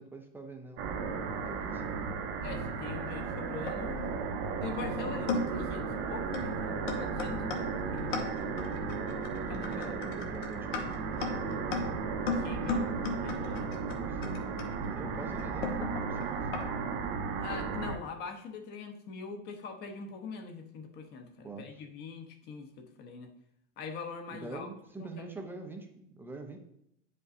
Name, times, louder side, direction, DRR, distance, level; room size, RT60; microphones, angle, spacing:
voice 1, 0.0-2.0 9.5-10.9 14.1-17.0 21.4-21.7 24.3-26.6, right 3 dB, 5° right, 4 dB, 0.4 m, -45 dB
sound 1, 0.8-18.0, right 5 dB, 65° right, 0.9 m, -35 dB
voice 2, 2.4-4.0 4.6-8.1 9.5-9.9 12.2-12.9 13.2-13.7 17.4-23.3 23.8-24.7 25.0-25.2, left 5 dB, 35° left, 5 dB, 0.9 m, -43 dB
sound 2, 3.2-4.1 4.8-4.9 5.3-5.7 6.3-6.5 6.9-16.7, left 4 dB, 75° left, 1.3 m, -37 dB
9.3 x 5.4 x 2.5 m, 0.75 s
supercardioid pair, 150°, 30 cm